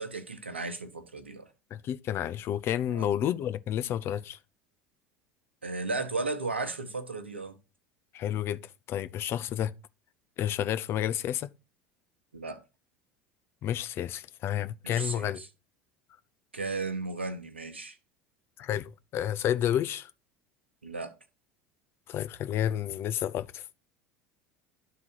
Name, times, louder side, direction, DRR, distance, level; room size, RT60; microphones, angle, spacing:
voice 1, 0.0-1.5 2.9-3.1 5.6-7.6 12.3-12.6 14.8-15.5 16.5-18.0 20.8-21.1, right 3 dB, 85° right, 0.9 m, -35 dB
voice 2, 1.7-4.4 8.1-8.6 8.9-9.7 10.4-11.5 13.6-15.4 18.6-20.1 22.1-23.6, left 11 dB, 40° left, 0.5 m, -30 dB
11.0 x 3.8 x 4.4 m
figure-of-eight pair, 70°, 6 cm